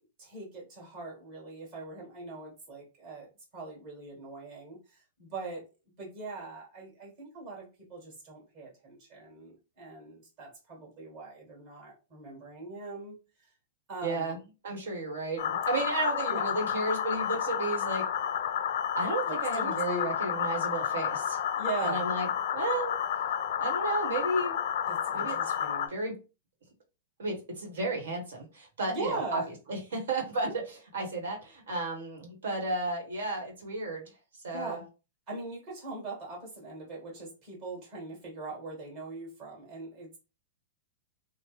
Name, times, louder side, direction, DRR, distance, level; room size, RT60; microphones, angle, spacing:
voice 1, 0.2-3.3 3.5-5.6 6.0-13.2 13.9-14.4 16.3-16.5 19.3-20.1 21.6-22.0 24.9-25.9 28.9-29.5 30.4-30.5 34.5-34.9 35.3-40.2, right 3 dB, 40° right, -2 dB, 1.7 m, -40 dB
voice 2, 14.0-14.4 14.6-18.1 19.0-21.4 21.8-22.3 22.5-23.0 23.6-24.5 25.1-25.5 25.9-26.2 27.2-29.4 29.7-34.1 34.4-34.8, right 2 dB, 85° right, 0 dB, 1.2 m, -33 dB
sound 1, 15.4-25.9, left 9 dB, 70° left, 0.4 m, -31 dB
3.0 x 2.1 x 3.1 m, 0.31 s
hypercardioid pair, 140°, 0 cm